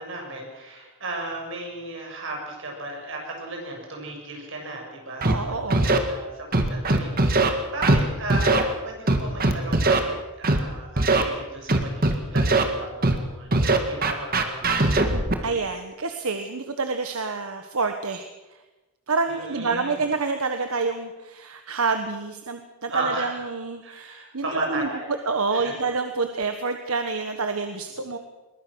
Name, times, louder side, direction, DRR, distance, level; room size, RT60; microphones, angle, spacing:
voice 1, 0.0-14.9 19.3-20.0 22.9-23.4 23.8-25.2 25.5-25.8, right 2 dB, 55° right, 0 dB, 7.0 m, -35 dB
Scratching (performance technique), 5.2-5.3 5.7-6.0 6.5-7.5 7.8-8.0 8.3-8.6 9.1-10.0 10.4-10.6 11.0-11.2 11.7-12.6 13.0-13.2 13.5-15.4, right 2 dB, 40° right, 1.9 m, -20 dB
voice 2, 5.2-5.9 15.4-18.3 19.1-24.9 25.3-28.2, right 4 dB, 75° right, 6 dB, 1.4 m, -28 dB
22.0 x 20.5 x 6.4 m, 1.1 s
head